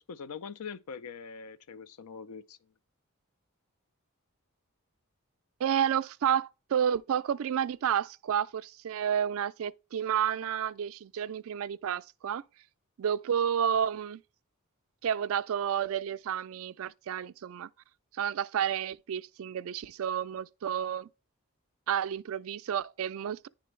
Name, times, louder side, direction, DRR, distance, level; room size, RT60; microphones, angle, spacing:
voice 1, 0.0-2.6, left 6 dB, 80° left, 0.5 m, -43 dB
voice 2, 5.6-12.4 13.0-14.2 15.0-17.7 18.1-21.1 21.9-23.5, right 8 dB, 65° right, 0.3 m, -30 dB
10.0 x 3.7 x 3.2 m
head